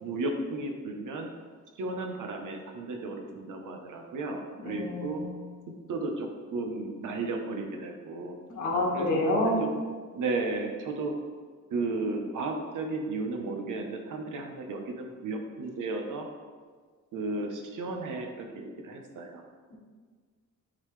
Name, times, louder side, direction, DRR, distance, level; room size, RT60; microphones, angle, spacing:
voice 1, 0.0-1.3 1.8-5.2 5.9-8.3 8.9-9.8 10.1-11.1 11.7-16.3 17.1-19.4, right 3 dB, 80° right, 3 dB, 1.0 m, -34 dB
voice 2, 4.6-5.3 8.5-9.6, left 1 dB, 65° left, -3 dB, 1.6 m, -28 dB
9.9 x 4.0 x 3.2 m, 1.6 s
wide cardioid pair, 150°, 31 cm